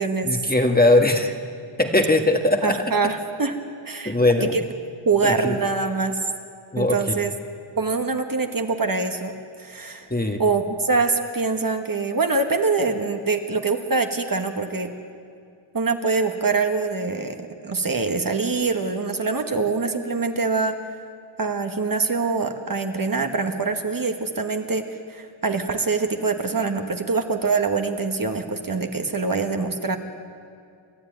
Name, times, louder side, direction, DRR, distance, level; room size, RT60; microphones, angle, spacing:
voice 1, 0.2-1.3 1.8-2.8 4.0-4.6 5.2-5.6 6.7-7.1 10.1-10.4, left 2 dB, 20° left, 4 dB, 1.6 m, -20 dB
voice 2, 2.6-3.6 3.8-4.2 4.5-4.6 5.0-6.2 6.8-7.3 7.8-10.1 10.4-14.9 15.7-20.8 21.4-30.0, right 4 dB, 40° right, 5 dB, 1.5 m, -24 dB
28.0 x 12.5 x 9.4 m, 2.4 s
wide cardioid pair, 95°, 50 cm